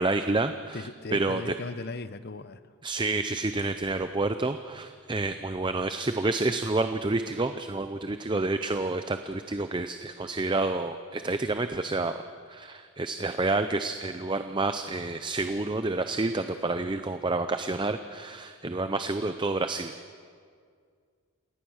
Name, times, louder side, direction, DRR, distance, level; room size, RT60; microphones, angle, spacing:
voice 1, 0.0-1.5 2.8-12.2 12.5-19.9, right 2 dB, 20° right, 9 dB, 0.5 m, -29 dB
voice 2, 0.7-2.6, left 3 dB, 45° left, 13 dB, 0.7 m, -37 dB
28.0 x 17.5 x 6.4 m, 2.1 s
head